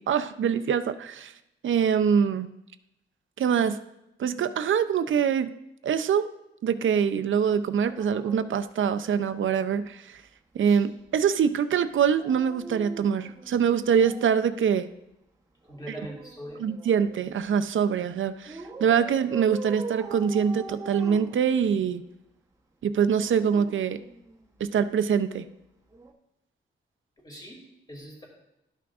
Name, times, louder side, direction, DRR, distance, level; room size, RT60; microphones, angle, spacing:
voice 1, 0.0-1.3 1.6-2.5 3.4-3.8 4.2-5.5 5.8-6.3 6.6-10.2 10.5-14.9 15.9-16.0 16.6-22.0 22.8-24.0 24.6-25.5, right 7 dB, 70° right, 10 dB, 0.5 m, -24 dB
Dog, 7.7-9.5 12.0-14.4 15.6-17.3 18.5-22.0 23.0-24.6 25.9-26.1, right 3 dB, 15° right, 0.9 m, -43 dB
voice 2, 15.7-16.6 27.2-27.6 27.9-28.3, equal, 20° left, -2 dB, 2.4 m, -41 dB
12.5 x 6.0 x 2.4 m, 0.86 s
wide cardioid pair, 115°, 21 cm